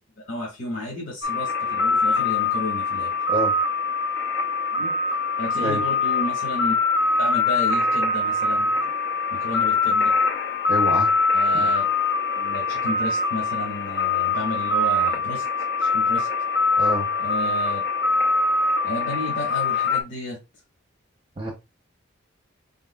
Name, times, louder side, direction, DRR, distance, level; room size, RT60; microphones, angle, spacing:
voice 1, 0.2-3.1 4.7-4.9 5.4-6.7 7.2-8.7 9.3-10.1 11.3-11.8 12.4-15.4 15.8-16.3 17.2-17.8 18.8-20.4, left 1 dB, 70° left, 1.8 m, -32 dB
sound 1, 1.2-20.0, left 3 dB, 55° left, 0.7 m, -23 dB
voice 2, 10.7-11.1 11.5-11.7 16.8-17.1 21.4-21.5, equal, 25° right, 0.7 m, -26 dB
4.7 x 3.9 x 2.2 m
head